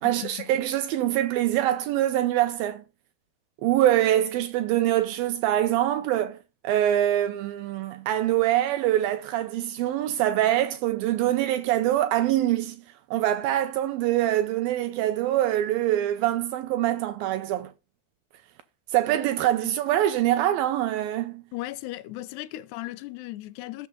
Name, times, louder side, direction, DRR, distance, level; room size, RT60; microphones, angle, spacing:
voice 1, 0.0-2.8 3.6-6.4 6.6-12.8 13.1-17.7 18.9-21.4, right 13 dB, 75° right, 2.2 m, -24 dB
voice 2, 21.5-23.9, left 17 dB, 85° left, 2.7 m, -36 dB
14.0 x 6.6 x 3.8 m
omnidirectional pair, 4.7 m